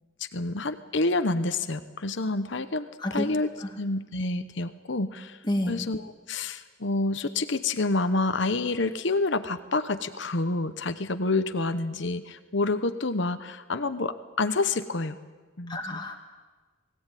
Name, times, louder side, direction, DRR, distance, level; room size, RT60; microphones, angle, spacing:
voice 1, 0.3-5.4 5.7-15.2 15.6-16.0, left 2 dB, 60° left, 10 dB, 1.0 m, -28 dB
voice 2, 15.7-16.2, left 1 dB, 20° left, 2 dB, 2.2 m, -29 dB
21.0 x 16.0 x 9.2 m, 1.4 s
head